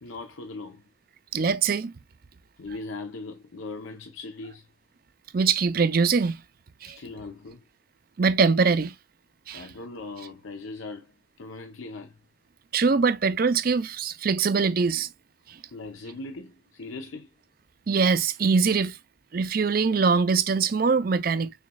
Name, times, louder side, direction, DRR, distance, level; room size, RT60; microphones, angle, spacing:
voice 1, 0.0-0.8 2.6-4.7 6.8-7.6 9.5-11.1 11.4-12.2 15.7-17.3, left 3 dB, 90° left, 0.7 m, -39 dB
voice 2, 1.3-1.9 5.3-6.4 6.8-7.0 8.2-8.9 9.5-9.6 12.7-15.1 17.9-19.0 19.3-21.5, right 5 dB, 45° right, 0.5 m, -23 dB
6.4 x 3.0 x 2.2 m
head